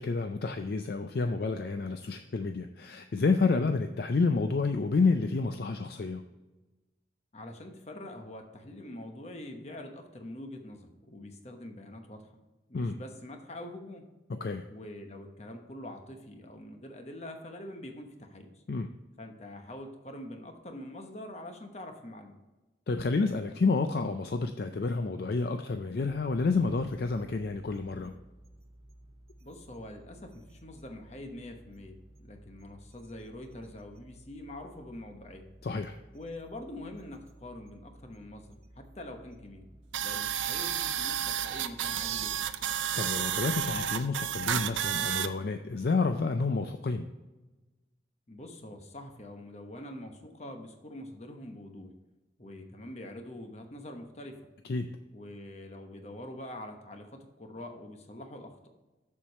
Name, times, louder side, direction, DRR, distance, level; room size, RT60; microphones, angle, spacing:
voice 1, 0.0-6.2 12.7-13.0 14.4-14.6 18.7-18.9 22.9-28.2 35.6-36.0 42.9-47.1 54.7-55.0, left 4 dB, 55° left, 7 dB, 0.4 m, -29 dB
voice 2, 7.3-12.3 12.7-14.1 14.7-18.6 19.2-22.4 29.4-35.4 36.1-39.6 40.0-42.4 48.3-51.9 52.4-54.4 55.1-58.7, left 1 dB, 35° left, 5 dB, 1.0 m, -44 dB
sound 1, 26.0-42.7, right 1 dB, 35° right, 0.9 m, -55 dB
sound 2, 39.9-45.3, right 9 dB, 85° right, 0.5 m, -31 dB
7.3 x 6.6 x 4.1 m, 1.1 s
head